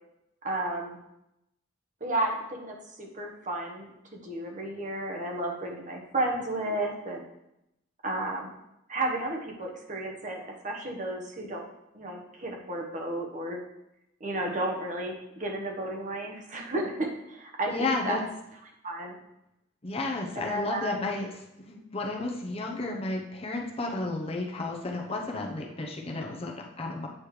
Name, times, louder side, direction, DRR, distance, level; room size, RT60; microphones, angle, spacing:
voice 1, 0.4-1.0 2.0-7.2 8.0-8.5 8.9-11.6 11.9-13.6 14.2-18.2 18.8-19.1 20.3-21.1, right 1 dB, 40° right, 0 dB, 1.0 m, -33 dB
voice 2, 17.7-18.2 19.8-27.1, left 2 dB, 30° left, 0 dB, 0.7 m, -32 dB
8.7 x 3.2 x 4.8 m, 0.86 s
head